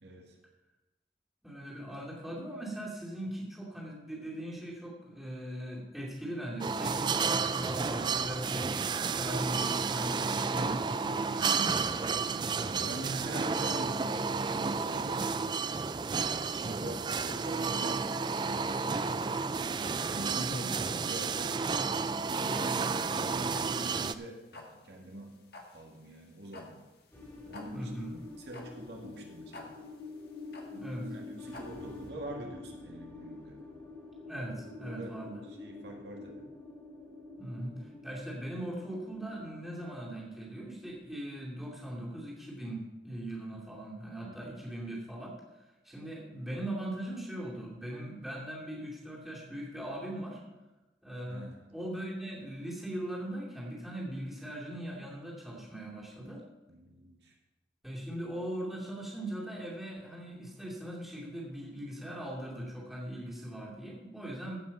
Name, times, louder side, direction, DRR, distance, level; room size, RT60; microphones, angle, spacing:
voice 1, 0.0-0.4 12.2-15.8 16.6-19.4 20.1-21.6 22.3-25.3 25.7-26.8 27.5-27.9 28.4-29.8 30.9-33.6 34.8-35.1 35.5-36.5 44.2-44.6 51.3-51.7 56.7-57.3, right 1 dB, 70° right, 0 dB, 1.9 m, -44 dB
voice 2, 1.4-8.7 9.1-11.9 20.3-20.7 27.7-28.2 30.7-31.1 34.3-35.4 37.4-50.4 51.0-51.4 51.7-56.4 57.8-64.6, right 1 dB, ahead, -5 dB, 2.5 m, -40 dB
sound 1, 6.6-24.1, right 5 dB, 25° right, 0.3 m, -31 dB
sound 2, 22.1-32.1, left 2 dB, 60° left, 1.6 m, -51 dB
sound 3, 27.1-41.8, left 3 dB, 15° left, 2.6 m, -48 dB
15.5 x 5.9 x 5.3 m, 1.1 s
head